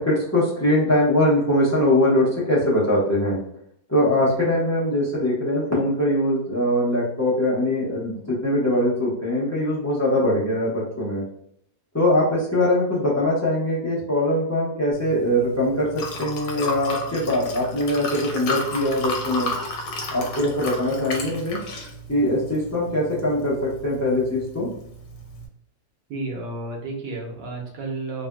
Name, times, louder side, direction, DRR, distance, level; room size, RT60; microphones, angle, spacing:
voice 1, 0.0-3.4 3.9-11.2 11.9-19.5 20.1-21.6 22.1-24.7, left 1 dB, 15° left, -7 dB, 0.7 m, -22 dB
Liquid, 14.9-25.5, left 2 dB, 70° left, 1.2 m, -33 dB
voice 2, 26.1-28.3, right 2 dB, 90° right, 0 dB, 1.5 m, -31 dB
3.3 x 2.5 x 2.2 m, 0.70 s
omnidirectional pair, 1.8 m